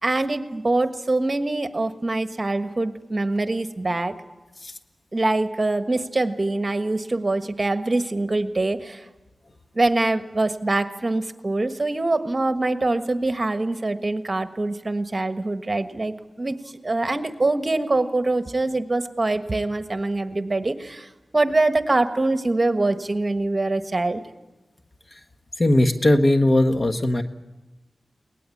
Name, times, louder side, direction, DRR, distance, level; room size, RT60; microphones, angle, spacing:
voice 1, 0.0-4.1 5.1-9.0 9.7-16.6 16.8-21.1 21.3-24.2, right 2 dB, 40° right, 9 dB, 1.4 m, -24 dB
voice 2, 25.6-27.2, left 1 dB, 45° left, 8 dB, 1.5 m, -18 dB
22.5 x 18.5 x 8.5 m, 1.1 s
cardioid pair, 45°, 0 cm